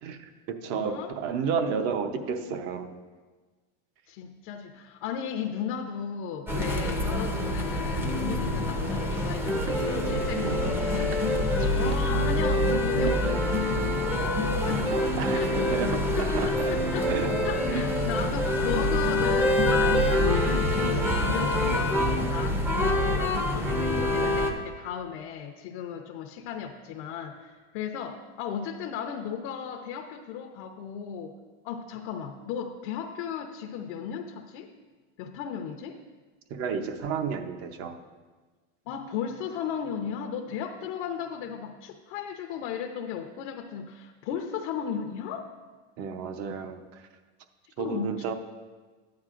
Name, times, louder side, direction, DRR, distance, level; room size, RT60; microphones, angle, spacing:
voice 1, 0.0-3.0 10.4-10.7 15.2-16.7 17.1-17.3 17.7-17.9 18.2-18.4 36.5-38.0 46.0-47.0 47.8-48.3, right 6 dB, 40° right, 7 dB, 0.8 m, -32 dB
voice 2, 0.7-1.1 4.1-11.1 11.6-14.9 15.3-31.3 31.6-34.7 35.2-36.0 38.9-45.5 47.8-48.3, left 7 dB, 60° left, 3 dB, 0.8 m, -36 dB
sound 1, 6.5-24.5, left 1 dB, 5° right, 0.6 m, -25 dB
13.0 x 9.5 x 2.5 m, 1.4 s
supercardioid pair, 155°, 35 cm